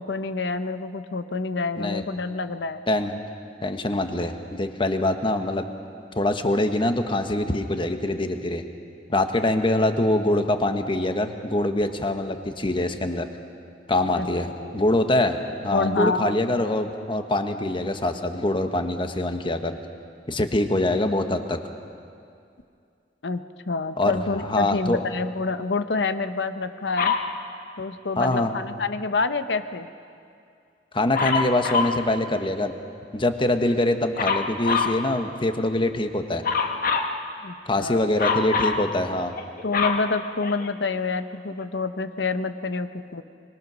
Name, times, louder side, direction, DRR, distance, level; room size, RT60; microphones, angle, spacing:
voice 1, 0.0-2.8 14.1-14.3 14.6-14.7 15.7-16.4 23.2-27.1 27.8-29.9 37.4-38.0 39.6-43.2, left 3 dB, 80° left, 10 dB, 0.9 m, -27 dB
voice 2, 2.9-3.2 3.6-5.7 6.1-8.6 9.1-13.3 13.9-19.7 20.3-21.6 24.0-25.0 28.2-28.5 30.9-32.8 33.1-36.4 37.7-39.3, left 1 dB, 30° left, 7 dB, 1.2 m, -24 dB
Dog, 27.0-27.3 31.1-32.0 34.2-35.0 36.4-37.1 38.2-38.8 39.4-40.9 41.6-41.7, left 5 dB, 55° left, 1.4 m, -24 dB
24.5 x 22.0 x 6.2 m, 2.4 s
head